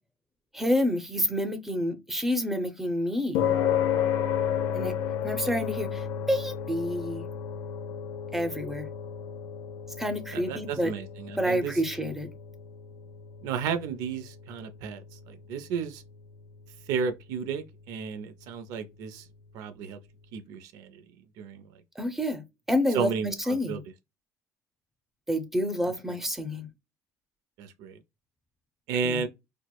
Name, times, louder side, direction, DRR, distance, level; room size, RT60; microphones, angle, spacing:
voice 1, 0.5-3.4 4.7-5.0 5.2-7.3 8.3-8.9 10.0-10.9 11.4-12.3 22.0-22.4 22.7-23.8 25.3-26.7 29.0-29.2, equal, 5° right, 0.6 m, -28 dB
sound 1, 3.3-19.9, left 9 dB, 80° left, 0.5 m, -34 dB
voice 2, 10.3-11.7 13.4-15.0 15.3-16.0 16.9-19.2 19.5-20.0 20.3-20.9 21.4-21.6 22.9-23.8 27.6-27.9 28.9-29.3, right 6 dB, 80° right, 0.4 m, -32 dB
4.4 x 2.0 x 2.2 m
cardioid pair, 130°, 6 cm